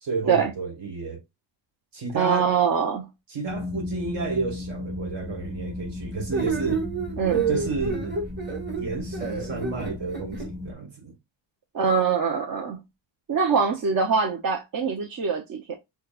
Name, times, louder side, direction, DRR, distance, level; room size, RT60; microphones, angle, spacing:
voice 1, 0.0-1.2 1.9-2.5 3.3-6.8 7.5-8.2 8.8-11.1, right 4 dB, 70° right, 1.7 m, -31 dB
voice 2, 2.1-3.1 7.2-7.5 11.7-12.8 13.3-15.7, right 6 dB, 50° right, 0.8 m, -23 dB
sound 1, 3.5-10.7, left 2 dB, 5° left, 0.4 m, -35 dB
sound 2, 6.3-10.5, right 5 dB, 25° right, 1.9 m, -29 dB
6.3 x 2.3 x 2.4 m
wide cardioid pair, 135°, 44 cm